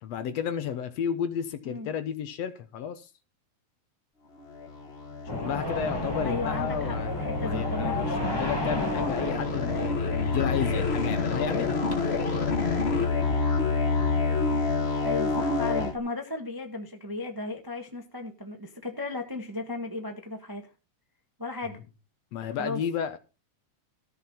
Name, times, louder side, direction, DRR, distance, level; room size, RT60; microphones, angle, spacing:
voice 1, 0.0-3.1 5.3-11.8 21.7-21.8 22.3-23.2, left 8 dB, 65° left, 1.9 m, -32 dB
sound 1, 4.5-15.9, left 4 dB, 50° left, 0.7 m, -28 dB
sound 2, 5.3-13.2, left 1 dB, 10° left, 1.2 m, -34 dB
voice 2, 6.2-7.9 15.0-20.7 21.4-21.8 22.6-22.8, left 2 dB, 15° right, 0.7 m, -35 dB
14.0 x 5.7 x 5.6 m
omnidirectional pair, 3.5 m